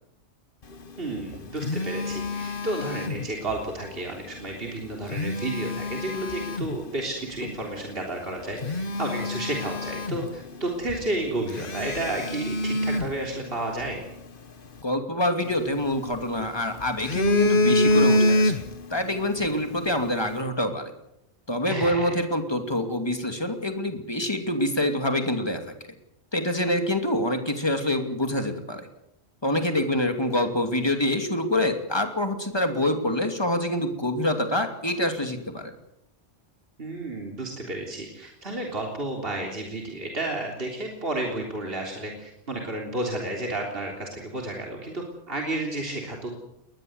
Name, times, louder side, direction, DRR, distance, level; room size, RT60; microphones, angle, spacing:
voice 1, 1.0-14.0 21.7-22.2 36.8-46.3, right 2 dB, 55° right, 0 dB, 3.8 m, -32 dB
Telephone, 1.1-3.6 4.9-6.8 7.4-7.6 8.1-8.2 8.6-10.6 10.9-11.0 11.5-13.9 15.4-16.4 16.8-19.0 19.2-19.5, left 1 dB, 50° left, 1.6 m, -26 dB
voice 2, 14.8-18.6 18.9-20.9 21.5-25.6 26.3-28.9 29.4-35.7, left 1 dB, 20° left, 6 dB, 2.7 m, -26 dB
21.0 x 20.0 x 8.0 m, 0.82 s
omnidirectional pair, 1.2 m